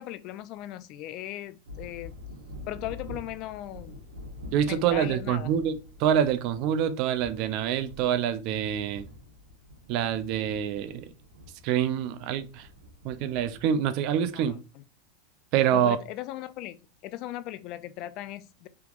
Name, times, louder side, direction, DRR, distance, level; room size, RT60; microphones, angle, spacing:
voice 1, 0.0-2.1 2.7-4.0 4.7-5.5 14.3-14.8 15.7-18.7, left 14 dB, 50° left, 0.3 m, -38 dB
sound 1, 1.6-14.4, left 2 dB, 85° right, 0.9 m, -47 dB
voice 2, 4.5-9.1 9.9-11.1 11.6-12.7 13.0-14.6 15.5-16.0, right 9 dB, 55° right, 0.4 m, -26 dB
3.5 x 2.9 x 2.4 m
hypercardioid pair, 115°, 0 cm